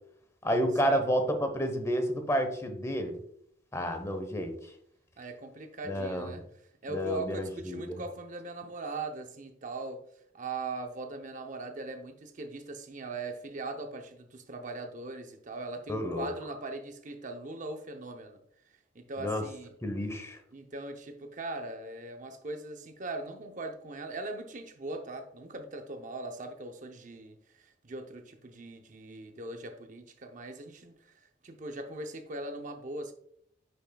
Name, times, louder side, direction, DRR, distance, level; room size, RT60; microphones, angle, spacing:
voice 1, 0.4-3.1 3.7-4.5 5.9-6.3 6.9-8.0 15.9-16.3 19.2-19.4 19.8-20.4, equal, 15° left, 7 dB, 0.9 m, -30 dB
voice 2, 5.2-6.5 6.8-10.0 10.3-18.4 18.7-19.7 20.5-33.1, right 2 dB, 45° right, 6 dB, 0.7 m, -40 dB
9.2 x 5.7 x 2.2 m, 0.68 s
head